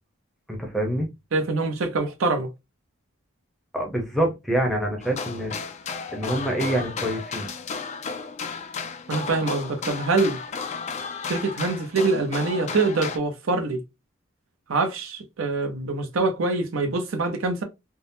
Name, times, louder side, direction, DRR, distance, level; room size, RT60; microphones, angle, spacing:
voice 1, 0.5-1.1 3.7-5.5 6.1-7.5, right 1 dB, ahead, 0.6 m, -26 dB
voice 2, 1.3-2.5 9.1-10.4 11.2-13.8 14.7-17.6, right 3 dB, 75° right, 0.6 m, -24 dB
sound 1, 5.0-13.2, left 5 dB, 35° left, 0.3 m, -33 dB
3.6 x 2.0 x 2.6 m
head